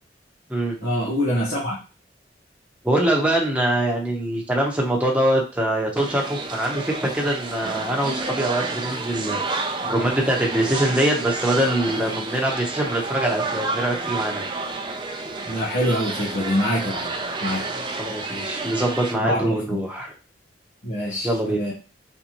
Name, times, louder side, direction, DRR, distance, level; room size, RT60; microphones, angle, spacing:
voice 1, 0.8-1.8 15.5-17.1 17.4-17.7 19.2-19.8 20.8-21.7, equal, 75° left, -6 dB, 1.5 m, -25 dB
voice 2, 2.8-9.4 9.8-14.4 18.0-20.1 21.2-21.6, right 1 dB, 5° right, -1 dB, 1.0 m, -23 dB
sound 1, 6.0-19.1, right 3 dB, 25° right, 0.5 m, -30 dB
4.1 x 3.6 x 3.0 m, 0.33 s
head